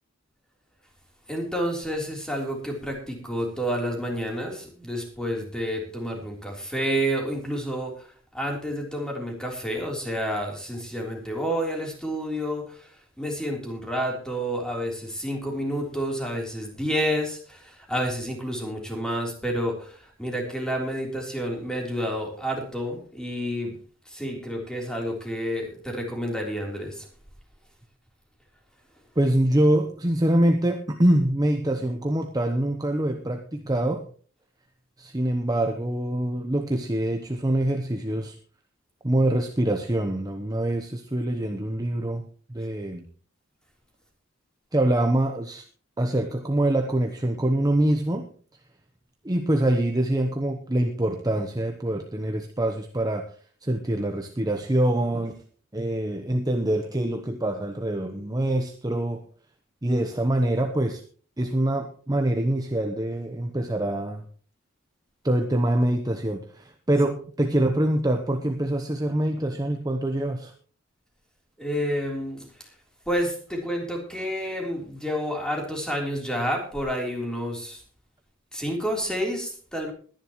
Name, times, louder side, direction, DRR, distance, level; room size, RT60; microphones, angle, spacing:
voice 1, 1.3-8.1 8.3-12.9 13.2-23.8 24.1-27.1 71.6-72.5 73.1-77.8 78.5-79.9, equal, 5° left, 0 dB, 3.6 m, -29 dB
voice 2, 29.2-34.1 35.0-38.4 39.0-42.2 42.5-43.1 44.7-45.6 46.0-48.3 49.2-53.3 53.6-55.4 55.7-59.2 59.8-61.0 61.4-64.2 65.2-70.5, right 1 dB, 20° right, 5 dB, 0.9 m, -25 dB
21.0 x 10.5 x 3.1 m, 0.42 s
head